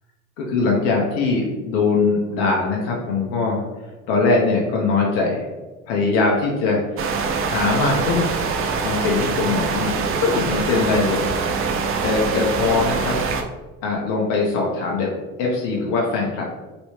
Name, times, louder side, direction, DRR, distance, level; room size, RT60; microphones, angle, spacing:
voice 1, 0.4-3.6 4.1-5.4 5.9-7.1 7.4-8.3 8.8-11.2 12.0-13.2 13.8-15.1 15.4-16.4, left 3 dB, 65° left, -2 dB, 0.8 m, -21 dB
sound 1, 7.0-13.4, right 4 dB, 35° right, 0.5 m, -24 dB
3.1 x 3.0 x 2.9 m, 1.2 s
hypercardioid pair, 70°, 40 cm